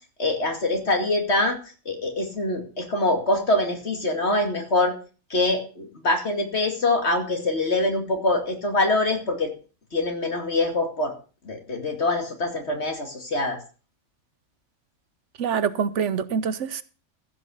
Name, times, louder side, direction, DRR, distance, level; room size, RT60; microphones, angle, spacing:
voice 1, 0.2-1.6 1.9-4.9 5.3-9.5 9.9-11.1 11.4-13.6, left 2 dB, 60° left, 3 dB, 2.7 m, -24 dB
voice 2, 15.4-16.8, right 7 dB, 75° right, 15 dB, 1.1 m, -25 dB
15.0 x 6.2 x 6.3 m, 0.37 s
omnidirectional pair, 1.3 m